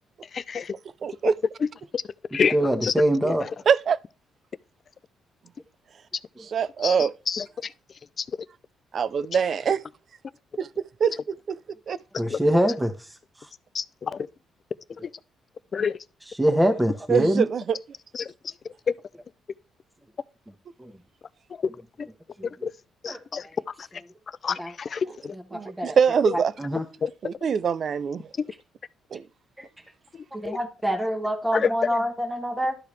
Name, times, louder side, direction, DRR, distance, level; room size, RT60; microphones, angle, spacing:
voice 1, 0.3-0.7 1.9-2.0 2.3-2.5 2.8-2.9 3.2-3.3 6.8-7.0 7.3-7.7 8.2-8.3 12.3-12.4 13.7-14.3 15.7-16.0 18.1-18.3 18.9-19.0 22.0-22.1 22.6-22.7 23.0-23.5 23.8-23.9 24.4-25.4 27.0-27.1 30.1-30.6 31.5-31.7, left 6 dB, 45° left, 0.4 m, -27 dB
voice 2, 1.0-1.4 3.7-4.0 6.4-7.1 8.9-9.8 10.6-10.7 11.0-11.6 11.9-12.0 17.1-17.8 25.5-26.5 27.2-28.3 29.1-29.2, right 7 dB, 55° right, 0.4 m, -23 dB
voice 3, 2.5-3.4 12.2-12.9 16.4-17.5 20.8-20.9 22.4-22.5 23.1-23.2 24.6-24.7 25.3-26.0 26.3-26.8 30.3-32.8, equal, 10° right, 1.3 m, -24 dB
12.0 x 4.7 x 3.3 m
cardioid pair, 90°, 0 cm